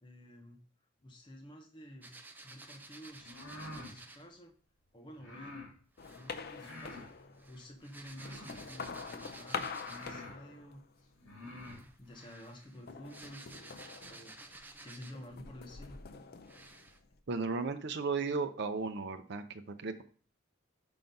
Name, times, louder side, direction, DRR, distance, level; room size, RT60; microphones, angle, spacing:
voice 1, 0.0-0.6 1.0-2.1 2.4-3.4 3.7-4.5 4.9-5.6 6.0-10.8 11.4-13.4 14.0-14.4 14.8-16.0, equal, 25° left, 1 dB, 0.8 m, -51 dB
sound 1, 2.0-4.3 6.0-10.3 11.5-15.4 15.9-16.0 16.4-17.0, right 2 dB, 10° right, 0.5 m, -54 dB
sound 2, 3.2-3.9 5.2-5.7 6.5-7.1 8.1-8.7 9.4-9.5 9.8-10.4 11.2-11.8, left 1 dB, 80° left, 2.3 m, -47 dB
sound 3, 6.0-7.6 8.1-11.1 11.4-12.0 12.9-14.8 15.1-17.2, left 5 dB, 50° left, 0.5 m, -45 dB
voice 2, 17.3-20.0, right 4 dB, 55° right, 7 dB, 0.6 m, -35 dB
5.8 x 3.9 x 5.2 m, 0.42 s
head